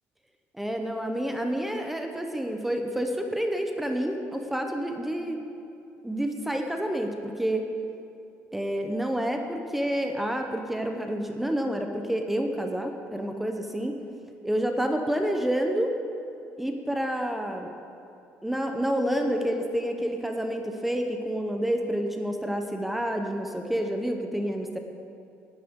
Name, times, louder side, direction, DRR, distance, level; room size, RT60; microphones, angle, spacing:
voice 1, 0.5-5.4 6.0-7.7 8.5-14.0 14.4-15.9 16.6-17.7 18.4-24.8, equal, 5° right, 4 dB, 0.6 m, -29 dB
18.0 x 10.5 x 3.7 m, 2.7 s
cardioid pair, 170°, 5 cm